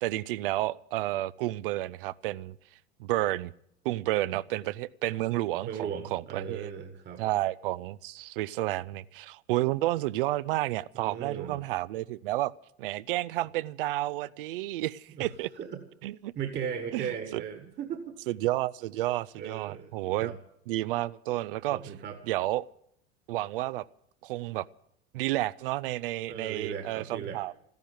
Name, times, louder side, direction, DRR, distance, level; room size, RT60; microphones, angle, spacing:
voice 1, 0.0-2.6 3.0-3.5 3.8-6.7 7.2-12.5 12.8-15.5 16.0-16.3 16.9-17.4 18.3-20.3 20.7-21.8 22.3-22.7 23.3-23.9 24.2-24.7 25.1-27.5, right 16 dB, 55° right, 20 dB, 0.6 m, -31 dB
voice 2, 5.6-7.2 11.0-11.6 15.1-15.3 15.6-15.8 16.4-18.2 19.4-19.9 20.2-20.4 21.7-22.2 26.3-27.4, right 7 dB, 30° right, 7 dB, 1.6 m, -37 dB
14.5 x 10.5 x 9.2 m, 0.71 s
figure-of-eight pair, 75°, 33 cm